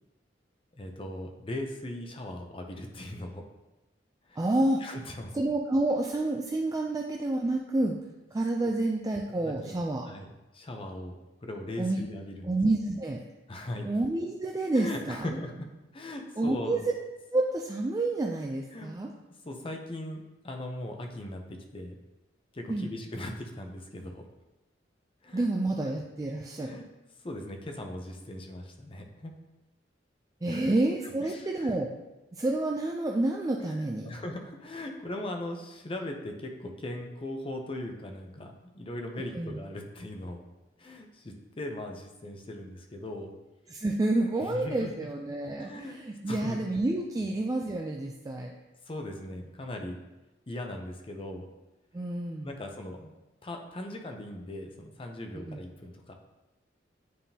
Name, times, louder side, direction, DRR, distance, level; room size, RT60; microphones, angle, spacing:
voice 1, 0.8-3.4 4.3-4.5 4.8-5.3 9.3-9.7 10.1-12.6 13.5-13.9 14.7-15.7 15.9-16.9 18.7-18.9 19.4-21.4 21.7-22.0 22.5-24.2 25.2-25.5 26.6-26.9 27.2-29.3 30.4-30.7 31.0-31.8 33.6-40.4 40.8-43.3 44.4-44.9 45.6-46.0 46.3-46.6 48.9-50.0 50.5-51.5 52.4-53.1 53.4-56.1, left 1 dB, 30° left, 3 dB, 0.7 m, -39 dB
voice 2, 4.4-4.8 5.3-7.9 8.3-10.1 11.8-12.0 12.4-13.2 13.9-15.4 16.4-16.8 17.3-19.1 22.7-22.9 25.3-26.8 30.4-31.9 32.4-34.1 39.3-39.6 43.7-48.5 51.9-52.5 55.5-55.6, right 2 dB, 20° right, 0 dB, 0.3 m, -29 dB
9.4 x 3.6 x 2.8 m, 1.0 s
head